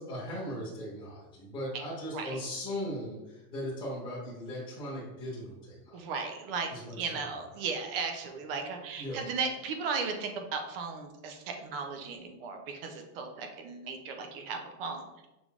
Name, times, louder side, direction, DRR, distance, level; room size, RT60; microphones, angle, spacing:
voice 1, 0.0-6.0 6.7-7.2 9.0-9.2, equal, 10° left, -8 dB, 1.2 m, -38 dB
voice 2, 5.9-6.7 7.0-15.1, right 5 dB, 40° right, 4 dB, 0.5 m, -36 dB
6.1 x 3.4 x 2.4 m, 0.97 s
supercardioid pair, 165°, 48 cm